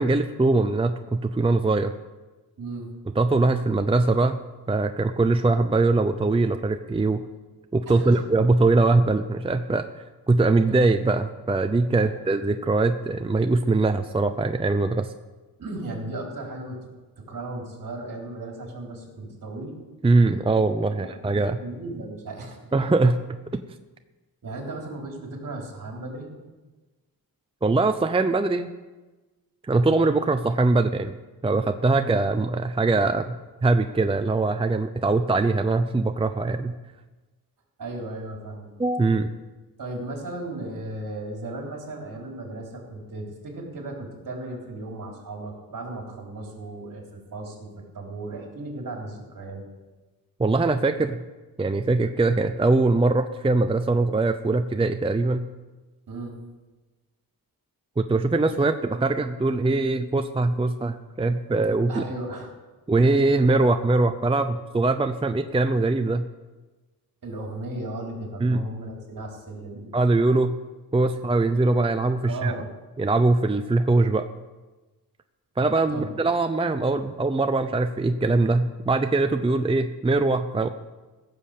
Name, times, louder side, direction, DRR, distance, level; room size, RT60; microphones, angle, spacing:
voice 1, 0.0-1.9 3.2-4.4 4.7-7.2 7.7-9.8 10.3-15.1 20.0-21.6 22.7-23.2 23.5-23.6 27.6-28.7 29.6-31.2 31.4-33.3 33.6-36.7 38.8-39.3 50.4-51.2 51.6-55.5 58.0-62.0 62.9-66.2 68.4-68.6 69.9-70.5 70.9-72.5 73.0-74.2 75.6-80.7, right 3 dB, 15° right, 8 dB, 0.5 m, -22 dB
voice 2, 2.6-2.9 7.9-8.2 11.9-12.1 15.6-16.8 17.2-19.8 20.9-22.6 24.4-26.3 37.8-38.7 39.8-49.6 56.1-56.4 61.9-62.5 67.2-70.0 72.2-72.7 75.9-76.1, right 2 dB, 60° right, 0 dB, 3.8 m, -36 dB
15.5 x 7.5 x 6.7 m, 1.2 s
wide cardioid pair, 105°, 38 cm